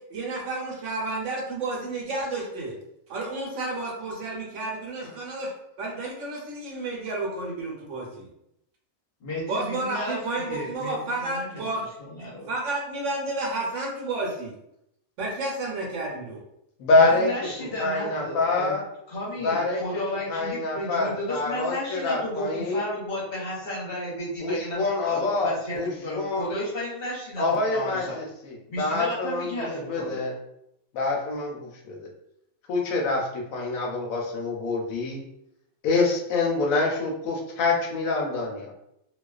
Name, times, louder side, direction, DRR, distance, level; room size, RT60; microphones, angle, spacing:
voice 1, 0.1-2.7 3.1-5.5 5.8-8.3 9.5-11.8 12.5-14.5 15.2-16.4, right 2 dB, 70° right, -2 dB, 0.9 m, -31 dB
voice 2, 9.2-11.7 12.0-12.5 16.9-18.7 19.1-28.2 28.7-30.2, left 1 dB, 50° left, -5 dB, 0.8 m, -33 dB
voice 3, 16.8-17.5 17.8-18.9 19.4-20.0 20.3-22.9 24.4-26.5 27.4-30.4 30.9-32.1 32.7-35.2 35.8-38.7, left 3 dB, 80° left, 0 dB, 1.0 m, -26 dB
2.3 x 2.3 x 2.3 m, 0.79 s
omnidirectional pair, 1.4 m